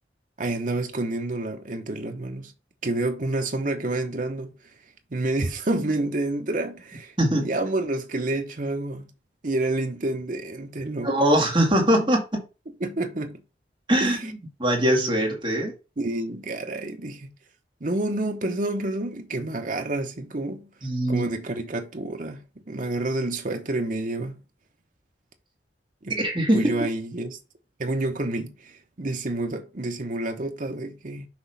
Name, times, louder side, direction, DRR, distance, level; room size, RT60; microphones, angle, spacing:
voice 1, 0.4-2.5 2.8-4.5 5.1-7.1 7.4-9.1 9.4-11.1 12.8-13.4 14.0-14.2 16.0-17.3 17.8-20.7 21.1-24.4 26.0-26.1 26.5-27.4 27.8-31.3, right 2 dB, 45° right, 0.9 m, -29 dB
voice 2, 7.2-7.5 11.0-12.2 13.9-15.7 20.8-21.2 26.1-26.8, right 1 dB, 25° right, 2.0 m, -22 dB
6.0 x 3.1 x 5.7 m
head